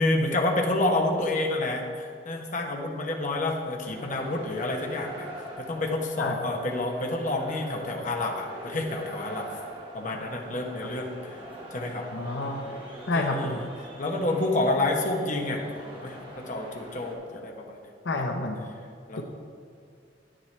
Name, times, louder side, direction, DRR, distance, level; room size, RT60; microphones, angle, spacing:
voice 1, 0.0-9.5 9.9-11.4 11.7-12.1 13.1-13.7 14.0-15.6 15.9-17.8 19.1-19.2, left 2 dB, 45° left, 1 dB, 1.1 m, -29 dB
sound 1, 3.8-17.1, right 1 dB, 30° right, 1.8 m, -43 dB
voice 2, 12.1-12.6 13.1-13.6 18.0-18.6 19.2-19.3, left 2 dB, 80° left, 3 dB, 0.8 m, -29 dB
10.0 x 9.1 x 3.3 m, 2.3 s
head